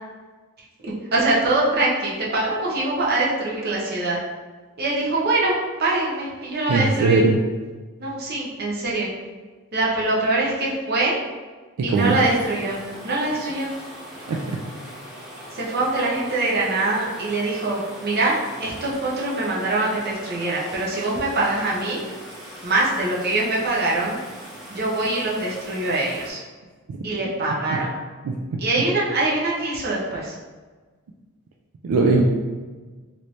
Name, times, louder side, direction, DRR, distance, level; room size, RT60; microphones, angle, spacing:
voice 1, 0.8-4.2 4.8-7.3 8.0-9.1 9.7-11.2 11.8-13.7 15.5-22.0 22.6-24.2 24.7-26.4 27.0-27.9 28.6-30.3, right 2 dB, 45° right, -5 dB, 0.7 m, -23 dB
voice 2, 6.7-7.4 11.8-12.2 14.3-14.6 26.9-27.0 28.2-28.6 31.8-32.2, right 3 dB, 75° right, 0 dB, 0.3 m, -20 dB
sound 1, 11.9-26.3, equal, 5° right, 0.7 m, -40 dB
3.1 x 2.6 x 3.1 m, 1.4 s
head